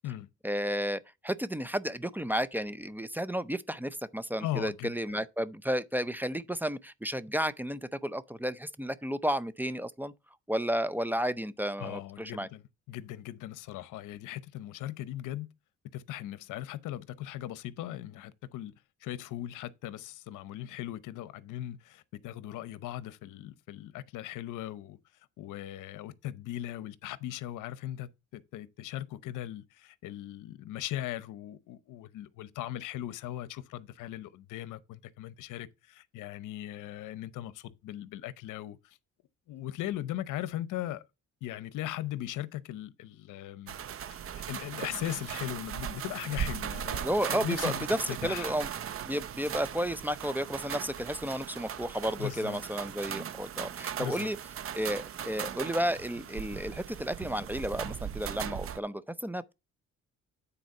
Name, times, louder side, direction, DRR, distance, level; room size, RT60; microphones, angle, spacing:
voice 1, 0.4-10.1 10.5-12.5 47.0-48.7 49.0-54.4 54.7-59.5, equal, 5° right, 0.5 m, -32 dB
voice 2, 4.4-5.2 11.8-12.6 12.9-15.5 15.9-18.7 19.0-25.0 25.4-39.0 39.5-41.0 41.4-43.8 44.3-48.5 52.2-52.6 54.0-54.3, left 13 dB, 85° left, 0.8 m, -39 dB
sound 1, 43.7-58.8, right 9 dB, 50° right, 0.6 m, -38 dB
9.2 x 4.2 x 5.4 m
cardioid pair, 90°, 30 cm